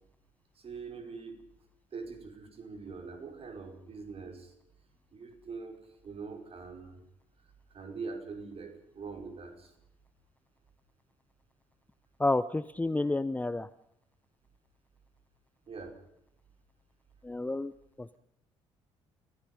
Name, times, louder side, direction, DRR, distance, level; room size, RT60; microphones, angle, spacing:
voice 1, 0.5-1.4 1.9-4.5 5.1-7.0 7.7-9.7 15.7-16.0, right 4 dB, 40° right, 4 dB, 4.9 m, -43 dB
voice 2, 12.2-13.7 17.2-17.7 18.0-18.2, left 2 dB, 10° left, 15 dB, 0.7 m, -30 dB
29.5 x 16.5 x 5.3 m, 0.76 s
figure-of-eight pair, 45°, 15 cm